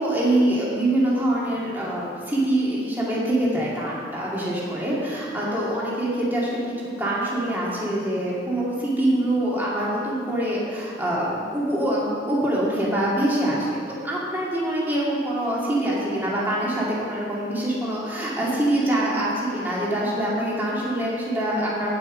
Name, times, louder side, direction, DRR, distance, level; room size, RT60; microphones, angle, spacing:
voice 1, 0.0-13.8 14.0-22.0, right 1 dB, 10° right, -6 dB, 2.4 m, -24 dB
16.0 x 5.7 x 5.2 m, 2.2 s
head